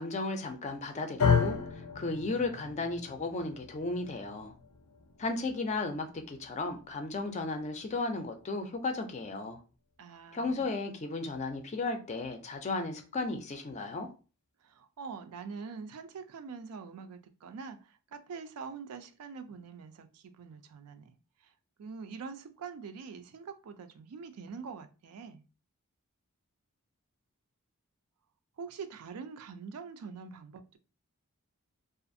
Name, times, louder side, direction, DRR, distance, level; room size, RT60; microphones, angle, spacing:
voice 1, 0.0-4.5 5.2-9.6 10.3-14.1, left 3 dB, 30° left, 0.4 m, -35 dB
sound 1, 1.2-9.4, left 6 dB, 90° left, 0.5 m, -34 dB
voice 2, 10.0-10.7 14.6-21.1 21.4-21.5 21.8-25.4 28.6-30.8, right 5 dB, 75° right, 0.4 m, -44 dB
2.4 x 2.4 x 2.5 m
head